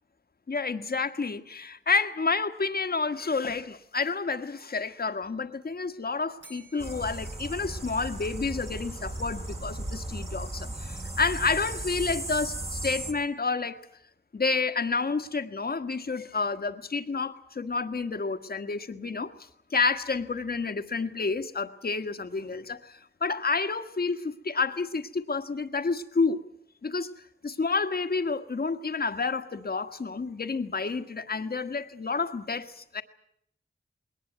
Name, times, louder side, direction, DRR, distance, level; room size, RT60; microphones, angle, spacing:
voice 1, 0.5-13.8 14.3-19.3 19.7-26.4 26.8-27.1 27.4-33.0, left 4 dB, 50° left, 9 dB, 1.5 m, -29 dB
Bell, 6.4-8.6, right 2 dB, 70° right, 5.5 m, -56 dB
sound 1, 6.8-13.1, right 1 dB, 30° right, 2.5 m, -36 dB
21.0 x 19.0 x 9.4 m, 0.71 s
wide cardioid pair, 100°, 20 cm